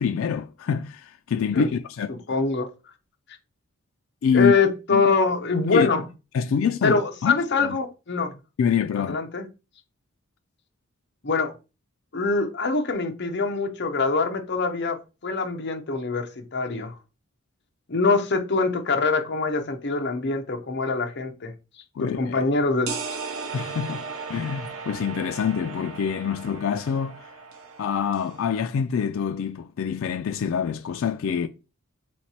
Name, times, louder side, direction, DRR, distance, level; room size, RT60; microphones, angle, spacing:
voice 1, 0.0-2.1 4.2-4.5 4.9-5.1 5.7-5.9 6.3-7.8 8.6-9.2 22.0-22.4 23.5-27.3 27.8-31.5, left 7 dB, 65° left, 0.3 m, -26 dB
voice 2, 2.1-2.7 4.3-6.0 6.8-8.3 9.1-9.4 11.2-11.5 12.1-16.9 17.9-21.5 22.0-23.0, left 4 dB, 50° left, 0.7 m, -24 dB
sound 1, 22.9-28.4, right 5 dB, 65° right, 0.8 m, -36 dB
3.8 x 3.2 x 4.2 m
head